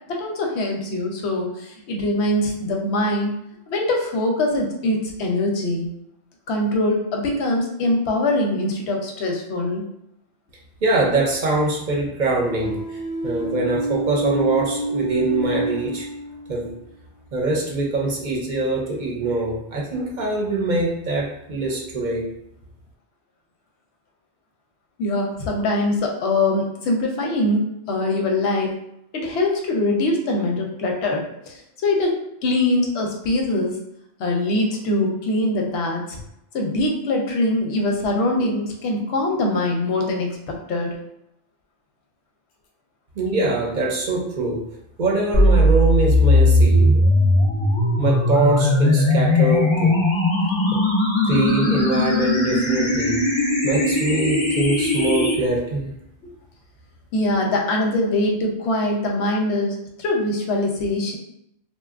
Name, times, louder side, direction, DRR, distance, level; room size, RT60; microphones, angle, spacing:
voice 1, 0.1-3.4 3.7-5.9 6.5-9.8 25.0-28.8 29.1-33.8 34.2-36.2 36.5-40.9 56.2-56.3 57.1-61.2, left 2 dB, 90° left, 0 dB, 0.9 m, -23 dB
voice 2, 10.8-16.1 16.5-16.7 17.3-22.3 43.2-44.6 45.0-47.0 48.0-50.0 50.7-50.8 51.2-53.2 53.6-55.9, right 2 dB, 55° right, -2 dB, 0.6 m, -23 dB
sound 1, 12.4-16.7, right 1 dB, 10° right, 0.8 m, -27 dB
sound 2, 45.3-55.3, left 1 dB, 50° left, 0.3 m, -18 dB
2.7 x 2.2 x 2.3 m, 0.78 s
omnidirectional pair, 1.1 m